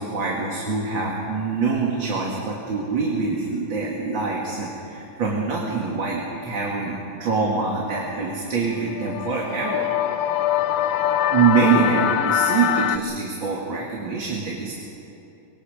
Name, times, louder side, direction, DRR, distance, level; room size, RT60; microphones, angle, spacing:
voice 1, 0.0-9.9 11.3-14.7, right 5 dB, 70° right, -3 dB, 3.0 m, -24 dB
sound 1, 8.7-13.0, left 11 dB, 75° left, 1.5 m, -23 dB
24.5 x 24.0 x 5.1 m, 2.8 s
omnidirectional pair, 2.2 m